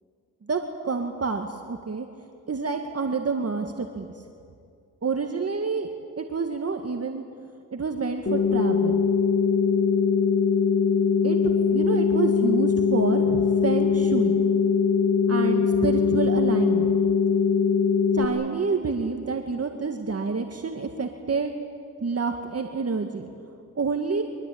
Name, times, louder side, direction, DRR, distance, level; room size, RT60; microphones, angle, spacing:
voice 1, 0.5-2.1 2.5-4.1 5.0-5.9 6.2-7.2 7.7-9.0 11.2-14.4 15.3-17.0 18.1-21.5 22.0-23.3 23.8-24.2, right 4 dB, 40° right, 4 dB, 1.9 m, -28 dB
sound 1, 8.3-18.3, left 6 dB, 40° left, 3.2 m, -21 dB
24.0 x 21.0 x 8.7 m, 2.3 s
cardioid pair, 60°, 37 cm